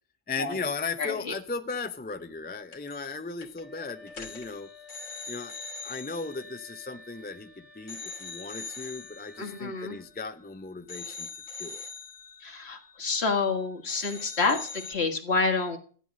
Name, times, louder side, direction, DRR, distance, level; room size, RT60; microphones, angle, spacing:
voice 1, 0.3-4.7 5.3-5.6 5.8-11.3 11.6-11.8, left 4 dB, 10° left, 9 dB, 0.5 m, -36 dB
voice 2, 1.0-1.3 9.4-10.0 12.4-15.8, left 4 dB, 60° left, 4 dB, 1.9 m, -28 dB
sound 1, 2.7-3.2 3.4-3.6 4.1-7.4 7.9-10.5 10.9-13.6 13.9-15.0, left 5 dB, 80° left, 2.0 m, -43 dB
Wind instrument woodwind instrument, 3.6-10.1, left 3 dB, 40° left, 1.7 m, -51 dB
13.0 x 9.1 x 6.3 m, 0.43 s
omnidirectional pair, 1.3 m